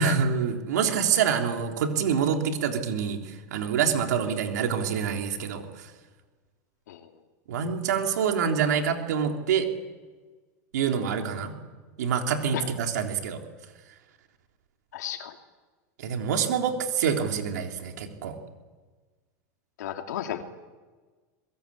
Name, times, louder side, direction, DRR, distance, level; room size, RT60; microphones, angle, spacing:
voice 1, 0.0-5.9 7.5-9.7 10.7-11.5 12.0-13.4 16.0-18.4, right 7 dB, 85° right, 3 dB, 3.7 m, -26 dB
voice 2, 14.9-15.3 19.8-20.4, left 11 dB, 90° left, 5 dB, 2.8 m, -33 dB
23.5 x 21.5 x 8.7 m, 1.4 s
supercardioid pair, 130°, 9 cm